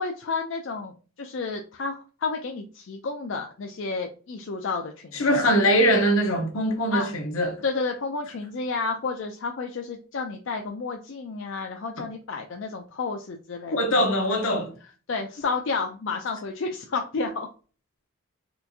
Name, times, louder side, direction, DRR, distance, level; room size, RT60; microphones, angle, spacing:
voice 1, 0.0-5.4 6.9-7.1 7.6-14.1 15.1-17.5, left 4 dB, 60° left, 0.4 m, -31 dB
voice 2, 5.1-7.6 13.7-14.7, equal, 80° left, 0.9 m, -22 dB
4.4 x 2.5 x 2.7 m
head